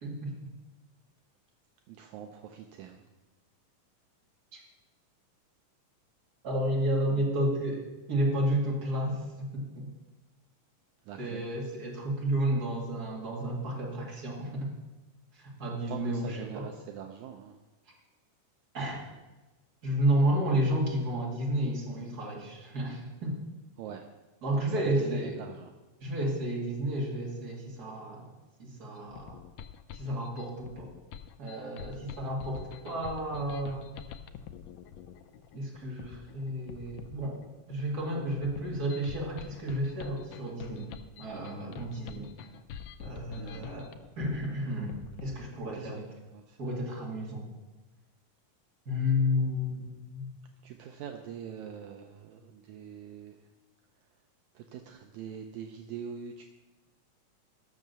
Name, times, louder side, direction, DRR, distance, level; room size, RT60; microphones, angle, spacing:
voice 1, 0.0-0.3 4.5-4.6 6.4-9.2 9.5-9.9 11.2-14.7 15.3-16.7 18.7-19.0 19.8-23.4 24.4-25.4 26.0-28.3 28.6-29.4 29.9-30.9 31.4-33.9 35.5-37.4 37.7-40.9 41.2-42.3 43.0-43.9 44.2-46.0 46.6-47.5 48.9-50.3, equal, 30° right, -2 dB, 2.5 m, -31 dB
voice 2, 1.9-3.0 11.1-11.5 15.9-17.6 23.8-24.1 24.5-25.7 43.4-43.7 45.3-45.4 45.8-45.9 46.3-46.8 50.6-53.4 54.6-56.4, right 8 dB, 80° right, 4 dB, 1.9 m, -43 dB
sound 1, 29.0-45.9, left 8 dB, 80° left, 1.7 m, -46 dB
12.0 x 6.4 x 6.8 m, 1.2 s
omnidirectional pair, 3.7 m